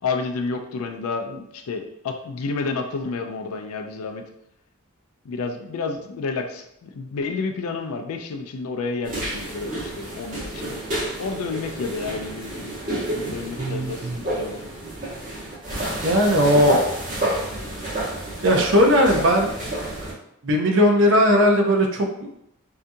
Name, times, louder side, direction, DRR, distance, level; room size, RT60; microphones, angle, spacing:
voice 1, 0.0-4.2 5.2-10.8 11.2-12.8 13.1-14.6, left 4 dB, 80° left, 4 dB, 0.4 m, -30 dB
sound 1, 9.0-20.1, right 1 dB, 40° right, 1.0 m, -29 dB
voice 2, 13.6-14.2 16.0-16.8 18.4-19.5 20.4-22.3, equal, 60° right, 2 dB, 0.5 m, -18 dB
2.7 x 2.3 x 2.6 m, 0.78 s
head